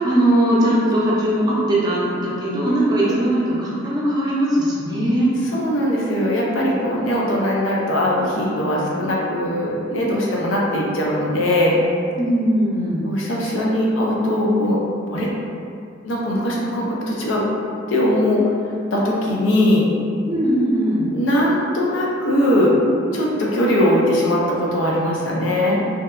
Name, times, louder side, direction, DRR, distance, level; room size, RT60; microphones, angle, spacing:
voice 1, 0.0-5.3 12.2-13.0 20.3-21.1, right 1 dB, 20° right, -8 dB, 0.5 m, -19 dB
voice 2, 5.5-11.8 13.0-14.8 15.1-15.3 16.0-17.5 17.9-18.5 18.9-19.9 21.1-22.8 23.1-25.8, left 1 dB, 80° left, -4 dB, 0.5 m, -20 dB
2.8 x 2.1 x 2.3 m, 2.4 s
head